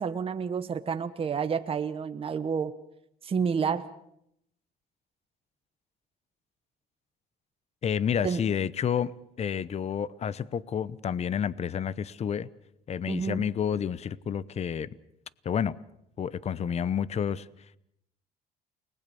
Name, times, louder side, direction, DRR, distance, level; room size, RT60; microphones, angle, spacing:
voice 1, 0.0-2.7 3.2-3.9 8.2-8.5 13.1-13.4, right 6 dB, 35° right, 1.2 m, -29 dB
voice 2, 7.8-9.1 9.4-12.5 12.9-14.9 15.4-15.8 16.2-17.5, left 8 dB, 40° left, 0.9 m, -29 dB
29.5 x 20.0 x 7.0 m
cardioid pair, 110°, 17 cm